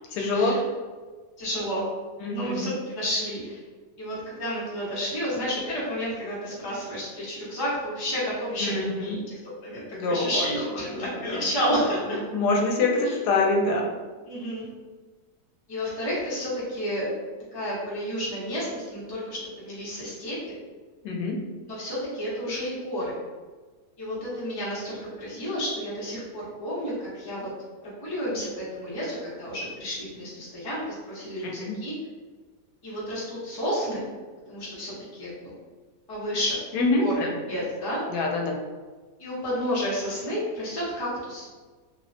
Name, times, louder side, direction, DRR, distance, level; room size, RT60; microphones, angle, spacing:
voice 1, 0.1-0.6 2.2-2.7 8.6-9.2 9.9-10.5 10.9-11.4 12.3-13.9 21.0-21.4 31.4-31.8 36.7-37.3 38.1-38.5, left 2 dB, 85° left, 0 dB, 1.2 m, -25 dB
voice 2, 1.4-1.9 2.3-3.6 4.0-12.2 13.0-13.2 14.3-14.7 15.7-17.1 17.5-20.4 21.7-23.1 24.0-27.5 27.8-31.9 32.8-34.0 34.5-35.5 36.1-36.6 37.0-38.0 39.2-41.4, equal, 25° left, -8 dB, 0.5 m, -31 dB
2.9 x 2.1 x 2.5 m, 1.4 s
omnidirectional pair, 1.7 m